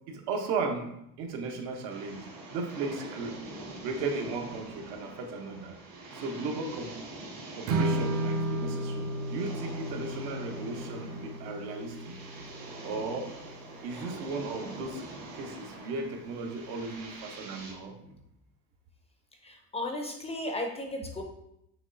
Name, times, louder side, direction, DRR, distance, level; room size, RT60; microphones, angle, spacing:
voice 1, 0.1-0.9 1.2-2.3 2.5-3.4 3.8-5.8 6.1-7.0 7.5-12.2 12.8-13.3 13.8-15.0 15.3-18.1, right 3 dB, 75° right, 3 dB, 0.9 m, -36 dB
sound 1, 1.9-17.7, right 2 dB, 60° right, 1.5 m, -45 dB
Strum, 7.7-13.9, right 2 dB, 40° right, 0.5 m, -34 dB
voice 2, 19.4-21.2, left 1 dB, 15° left, 3 dB, 0.4 m, -36 dB
6.0 x 3.0 x 2.6 m, 0.80 s
cardioid pair, 130°, 38 cm